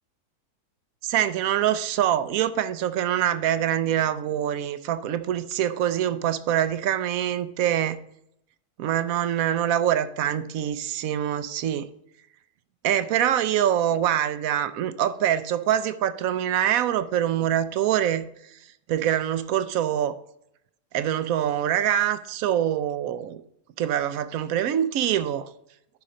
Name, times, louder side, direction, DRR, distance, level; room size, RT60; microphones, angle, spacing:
voice 1, 1.0-8.0 8.8-11.9 12.8-18.3 18.9-20.2 20.9-23.4 23.8-25.5, right 10 dB, 70° right, 1.0 m, -24 dB
10.5 x 4.1 x 5.1 m
omnidirectional pair, 1.6 m